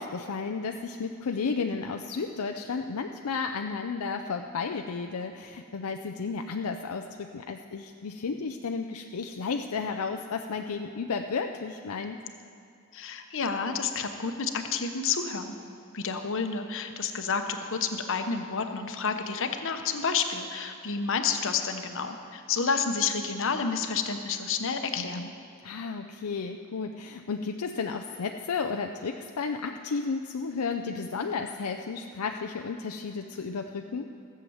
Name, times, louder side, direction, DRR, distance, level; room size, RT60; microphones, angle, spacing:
voice 1, 0.0-12.2 25.0-25.3 25.6-34.1, left 5 dB, 80° left, 5 dB, 0.5 m, -33 dB
voice 2, 12.9-15.5 15.9-25.3, left 5 dB, 60° left, 6 dB, 0.9 m, -30 dB
15.0 x 7.7 x 7.1 m, 2.6 s
head